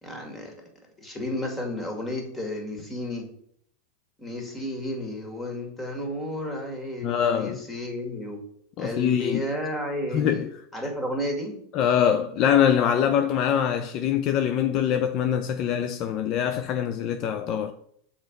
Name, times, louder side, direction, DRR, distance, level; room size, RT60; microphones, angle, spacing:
voice 1, 0.0-0.5 1.0-3.3 4.2-8.4 8.8-10.4 10.7-11.6, left 1 dB, 15° left, 2.1 m, -32 dB
voice 2, 7.0-7.6 8.8-9.4 10.1-10.5 11.7-17.7, left 9 dB, 50° left, 0.5 m, -23 dB
6.2 x 4.4 x 5.2 m
hypercardioid pair, 105°, 0 cm